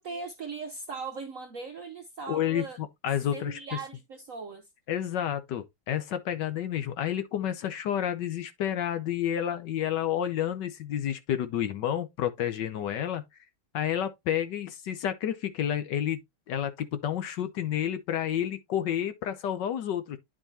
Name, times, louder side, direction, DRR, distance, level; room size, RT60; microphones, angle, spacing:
voice 1, 0.0-2.8 3.3-4.7, right 4 dB, 60° right, 0.8 m, -39 dB
voice 2, 2.3-3.6 4.9-13.2 13.7-16.2 16.5-20.2, left 10 dB, 65° left, 1.3 m, -30 dB
10.0 x 4.8 x 2.7 m
omnidirectional pair, 2.3 m